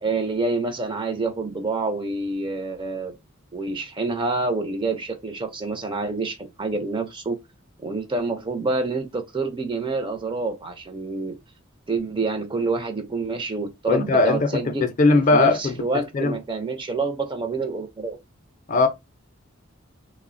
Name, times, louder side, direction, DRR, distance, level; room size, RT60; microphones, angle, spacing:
voice 1, 0.0-3.2 3.5-7.4 7.8-11.4 11.9-14.9 15.1-18.2, right 3 dB, 25° right, 0.4 m, -27 dB
voice 2, 13.9-15.8 16.1-16.4 18.7-18.9, left 3 dB, 40° left, 0.4 m, -19 dB
3.2 x 2.0 x 2.5 m
head